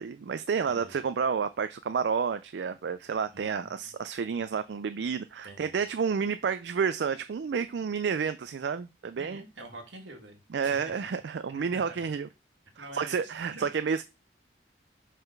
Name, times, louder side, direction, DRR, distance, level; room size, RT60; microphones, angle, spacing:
voice 1, 0.0-9.4 10.5-12.3 12.8-14.0, right 6 dB, 70° right, 11 dB, 0.4 m, -30 dB
voice 2, 3.3-3.9 5.4-5.8 9.1-11.2 11.5-12.0 12.8-13.7, right 2 dB, 90° right, 2 dB, 2.0 m, -47 dB
5.4 x 3.8 x 5.9 m, 0.28 s
head